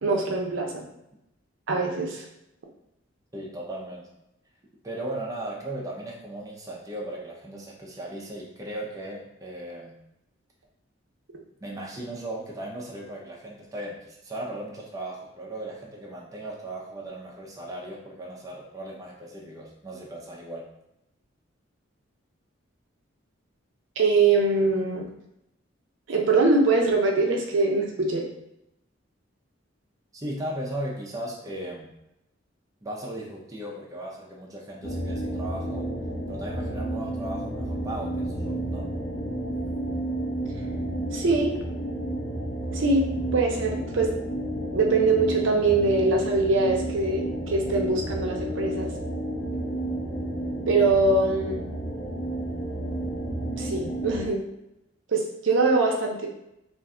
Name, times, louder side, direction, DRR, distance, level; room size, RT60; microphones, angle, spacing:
voice 1, 0.0-0.8 1.7-2.2 24.0-25.1 26.1-28.3 41.1-41.5 42.7-43.0 43.3-44.1 44.7-48.9 50.7-51.6 53.6-54.4 55.1-56.3, right 3 dB, 70° right, 0 dB, 0.6 m, -23 dB
voice 2, 3.3-4.1 4.8-10.0 11.6-20.7 30.1-31.9 32.8-35.9 36.3-38.9 39.5-39.6, right 1 dB, 20° right, -3 dB, 0.5 m, -37 dB
sound 1, 34.8-54.3, right 1 dB, 75° left, 0.7 m, -31 dB
2.5 x 2.2 x 3.6 m, 0.86 s
head